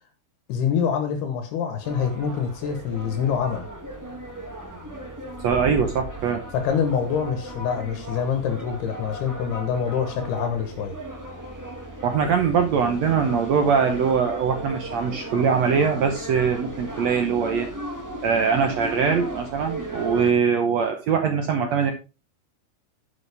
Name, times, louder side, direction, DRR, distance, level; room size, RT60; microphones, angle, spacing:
voice 1, 0.5-3.7 6.5-11.0, left 7 dB, 80° left, 3.2 m, -25 dB
sound 1, 1.8-20.3, right 1 dB, 10° right, 1.0 m, -36 dB
voice 2, 5.4-6.4 12.0-17.7 18.2-21.9, right 6 dB, 80° right, 1.5 m, -22 dB
11.0 x 7.7 x 3.5 m
omnidirectional pair, 4.5 m